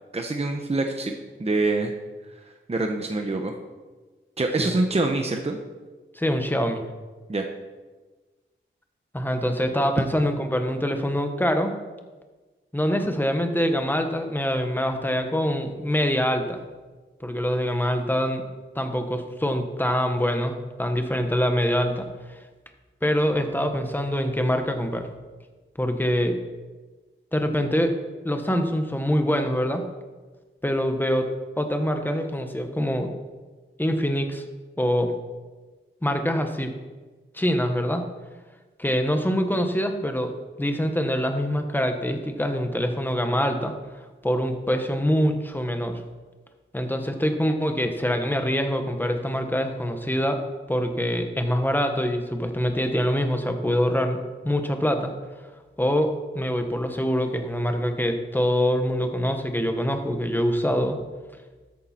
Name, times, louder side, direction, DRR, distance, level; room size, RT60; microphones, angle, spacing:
voice 1, 0.1-1.9 2.4-3.5 4.4-5.6 7.3-7.4, right 2 dB, 30° right, 3 dB, 1.0 m, -25 dB
voice 2, 6.1-6.8 9.1-11.7 12.7-16.6 17.2-18.5 18.7-22.4 23.0-25.1 25.8-26.4 27.3-28.0 28.2-29.9 30.6-33.1 33.8-34.4 34.8-35.2 36.0-36.7 37.3-38.1 38.8-40.3 40.6-43.7 44.2-46.0 46.7-54.2 54.4-55.1 55.8-61.0, equal, 10° left, 5 dB, 1.3 m, -24 dB
13.0 x 9.4 x 4.4 m, 1.3 s
wide cardioid pair, 95°, 21 cm